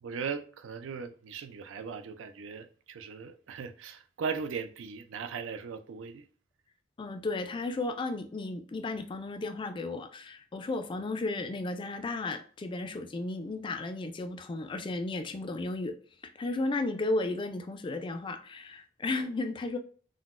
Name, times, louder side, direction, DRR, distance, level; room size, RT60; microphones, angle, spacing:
voice 1, 0.0-6.2, right 5 dB, 80° right, 0.4 m, -38 dB
voice 2, 7.0-16.0 16.4-19.8, left 2 dB, 25° left, 0.3 m, -34 dB
3.8 x 2.1 x 2.4 m
head